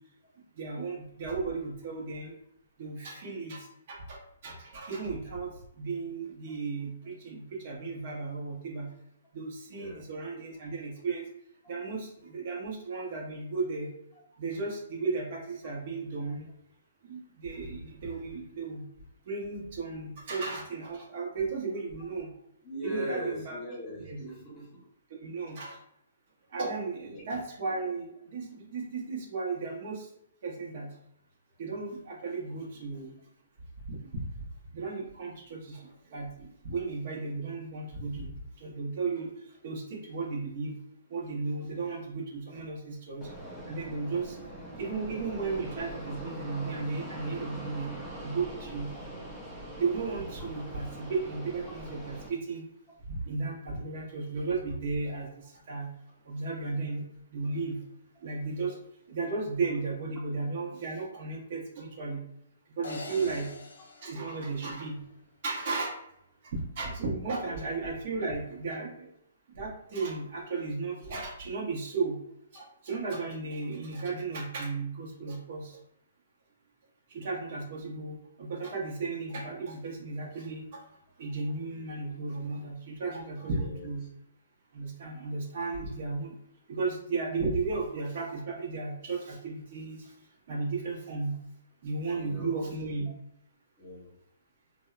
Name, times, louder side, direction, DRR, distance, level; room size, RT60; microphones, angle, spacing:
voice 1, 0.6-2.3 2.8-5.5 5.8-8.9 9.3-11.2 11.7-13.9 14.4-16.5 17.0-18.9 19.3-22.3 22.8-23.6 24.1-24.2 25.2-25.8 26.5-30.1 30.4-30.9 31.6-33.1 33.9-34.1 34.7-35.8 36.1-38.3 38.6-39.3 39.6-40.8 41.1-43.3 43.7-44.4 44.8-47.9 48.2-48.9 49.8-52.6 53.1-55.3 55.7-55.9 56.3-57.0 57.3-57.8 58.2-58.8 59.1-62.2 62.8-63.5 64.0-65.0 65.4-65.9 66.5-69.1 69.6-72.2 72.5-75.8 77.1-80.8 81.2-84.0 84.7-86.3 86.7-90.0 90.5-91.4 91.8-93.1, right 4 dB, 45° right, -2 dB, 0.7 m, -34 dB
voice 2, 22.6-24.7 27.0-27.2 63.1-63.4 67.4-67.6 72.5-72.6 83.4-83.9 92.1-92.7 93.8-94.1, equal, 15° left, -5 dB, 0.9 m, -39 dB
Fixed-wing aircraft airplane, 43.2-52.3, right 1 dB, 5° right, 0.5 m, -42 dB
sound 1, 62.8-65.2, left 4 dB, 80° left, 0.5 m, -45 dB
2.7 x 2.0 x 2.3 m, 0.76 s
hypercardioid pair, 150°, 0 cm